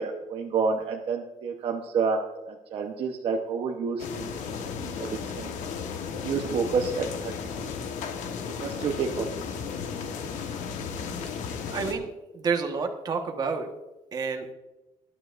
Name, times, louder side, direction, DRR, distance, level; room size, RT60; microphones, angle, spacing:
voice 1, 0.0-2.2 2.5-4.3 4.8-5.5 6.2-7.3 7.6-7.7 8.6-9.3, right 5 dB, 50° right, 0 dB, 1.0 m, -29 dB
sound 1, 4.0-11.9, left 6 dB, 85° left, 1.3 m, -34 dB
voice 2, 11.7-13.7 14.1-14.5, right 5 dB, 30° right, 4 dB, 1.4 m, -29 dB
20.0 x 11.5 x 2.6 m, 1.1 s
cardioid pair, 170°, 12 cm